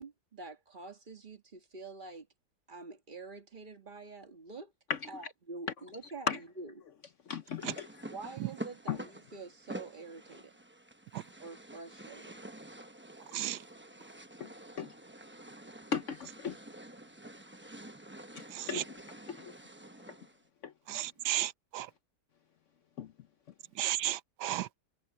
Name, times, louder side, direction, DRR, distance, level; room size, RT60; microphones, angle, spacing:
voice 1, 0.0-2.3 2.7-4.7 5.1-6.3 6.6-6.7 8.1-10.5 11.4-12.4, right 3 dB, 30° right, 1.6 m, -46 dB
voice 2, 7.3-8.0 8.9-9.0 13.3-13.4 14.4-14.5 14.8-14.9 15.9-16.6 18.3-19.5 20.1-20.2 20.6-20.7 23.0-23.1, left 6 dB, 60° left, 0.9 m, -37 dB
sound 1, 7.6-20.4, right 1 dB, 10° right, 0.6 m, -48 dB
voice 3, 18.5-18.8 20.9-21.9 23.8-24.7, right 13 dB, 85° right, 1.2 m, -34 dB
omnidirectional pair, 1.8 m